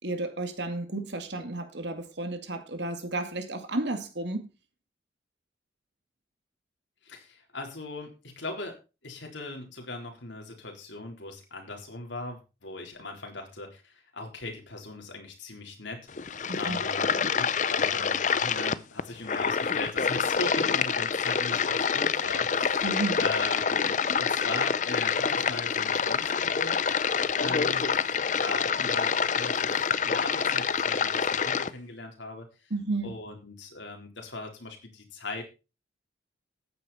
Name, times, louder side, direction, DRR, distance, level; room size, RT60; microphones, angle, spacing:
voice 1, 0.0-4.5 16.5-16.8 22.8-23.3 32.7-33.1, right 2 dB, 65° right, 2.3 m, -32 dB
voice 2, 7.0-8.8 9.0-16.1 16.4-22.9 23.2-27.0 27.4-32.5 33.0-35.4, left 2 dB, 80° left, 4.0 m, -39 dB
sound 1, 16.1-31.7, left 6 dB, 40° left, 0.6 m, -27 dB
13.5 x 9.8 x 4.3 m
head